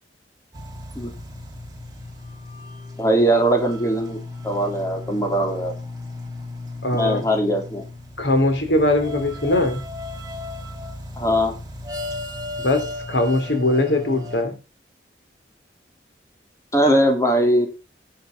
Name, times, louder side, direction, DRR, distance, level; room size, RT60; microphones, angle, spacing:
sound 1, 0.5-14.4, left 2 dB, 20° right, 4.1 m, -35 dB
voice 1, 3.0-4.2 4.4-5.7 6.9-7.8 11.2-11.5 16.7-17.7, right 1 dB, 20° left, 3 dB, 3.0 m, -20 dB
voice 2, 6.8-7.2 8.2-9.8 12.6-14.6, left 1 dB, 80° left, 6 dB, 3.2 m, -21 dB
10.5 x 6.7 x 5.8 m, 0.29 s
head